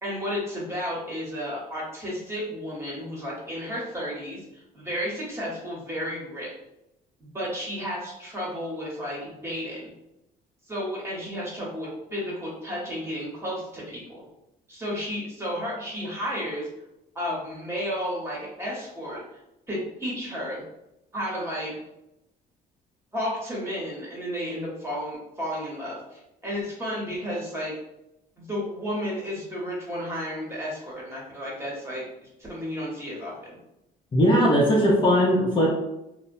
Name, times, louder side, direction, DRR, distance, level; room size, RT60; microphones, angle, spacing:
voice 1, 0.0-6.5 7.2-9.9 10.7-14.2 14.7-16.7 17.1-19.2 19.7-20.6 21.1-21.7 23.1-27.7 28.4-33.3, equal, 15° right, -5 dB, 1.1 m, -32 dB
voice 2, 34.1-35.7, equal, 25° left, -5 dB, 0.6 m, -19 dB
2.8 x 2.0 x 2.6 m, 0.88 s
cardioid pair, 110°, 17 cm